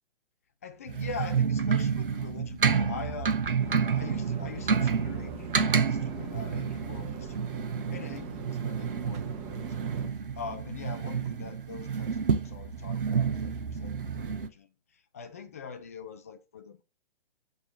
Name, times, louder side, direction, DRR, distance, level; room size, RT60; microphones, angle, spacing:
voice 1, 0.6-3.4 3.9-7.5 7.9-16.8, left 5 dB, 15° left, 0.4 m, -43 dB
sound 1, 0.9-14.5, right 6 dB, 60° right, 1.1 m, -29 dB
sound 2, 3.6-10.1, right 5 dB, 20° right, 1.4 m, -41 dB
7.9 x 3.8 x 5.3 m
figure-of-eight pair, 130°, 29 cm